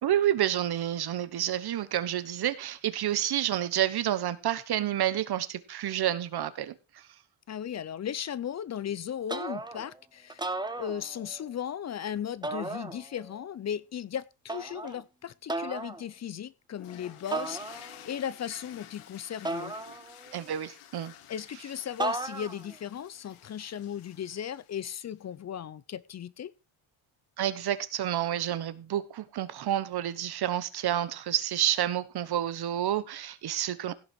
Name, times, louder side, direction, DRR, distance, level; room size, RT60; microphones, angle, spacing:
voice 1, 0.0-6.7 20.3-21.1 27.4-33.9, right 11 dB, 50° right, 1.3 m, -29 dB
voice 2, 7.5-10.5 10.7-19.7 21.3-26.5, left 9 dB, 35° left, 0.6 m, -36 dB
sound 1, 9.3-9.9 10.3-11.4 12.4-13.3 14.5-15.0 15.5-16.0 17.3-18.1 19.4-20.4 22.0-22.7, right 2 dB, 10° right, 1.0 m, -35 dB
sound 2, 16.8-25.2, left 11 dB, 90° left, 2.0 m, -51 dB
16.5 x 6.5 x 4.6 m
cardioid pair, 155°, 49 cm